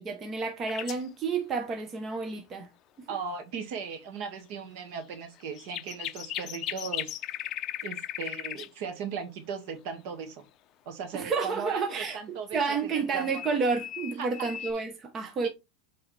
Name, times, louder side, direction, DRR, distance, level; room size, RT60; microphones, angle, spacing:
voice 1, 0.0-2.7 11.1-15.5, right 4 dB, 25° right, 1.1 m, -30 dB
sound 1, 0.7-1.1 5.1-8.7 12.6-14.7, left 12 dB, 35° left, 0.7 m, -37 dB
voice 2, 3.1-7.1 7.8-10.5 10.9-13.4 14.2-14.3 15.4-15.5, right 6 dB, 55° right, 1.9 m, -37 dB
7.8 x 4.1 x 3.4 m
supercardioid pair, 145°, 0 cm